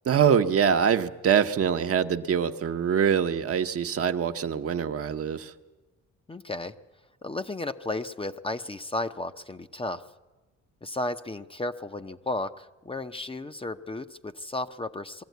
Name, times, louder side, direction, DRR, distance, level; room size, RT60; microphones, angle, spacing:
voice 1, 0.1-5.5, right 7 dB, 50° right, 8 dB, 0.9 m, -24 dB
voice 2, 6.3-6.8 7.2-10.0 10.8-15.2, left 2 dB, 20° left, 9 dB, 0.7 m, -34 dB
21.0 x 14.5 x 9.3 m, 1.2 s
cardioid pair, 90°, 30 cm